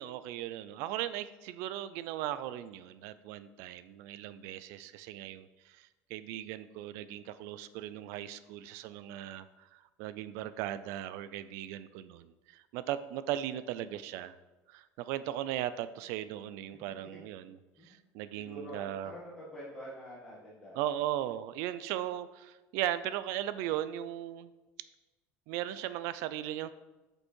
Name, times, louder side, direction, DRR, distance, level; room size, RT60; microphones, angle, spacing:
voice 1, 0.0-14.3 14.7-19.1 20.7-24.5 25.5-26.7, right 12 dB, 65° right, 14 dB, 0.4 m, -37 dB
voice 2, 18.4-20.8, equal, 10° left, -9 dB, 1.9 m, -46 dB
8.2 x 5.4 x 4.5 m, 1.1 s
cardioid pair, 170°, 5 cm